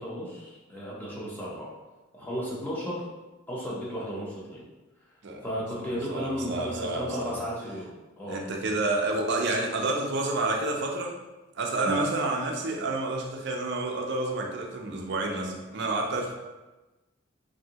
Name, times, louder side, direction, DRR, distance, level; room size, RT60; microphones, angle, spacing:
voice 1, 0.0-1.7 2.1-3.0 3.5-4.6 5.4-8.4 11.8-12.3, equal, 10° left, -6 dB, 0.6 m, -34 dB
voice 2, 5.9-7.4 8.3-11.1 11.6-16.3, right 2 dB, 55° right, 1 dB, 0.5 m, -29 dB
3.1 x 2.6 x 2.8 m, 1.1 s
head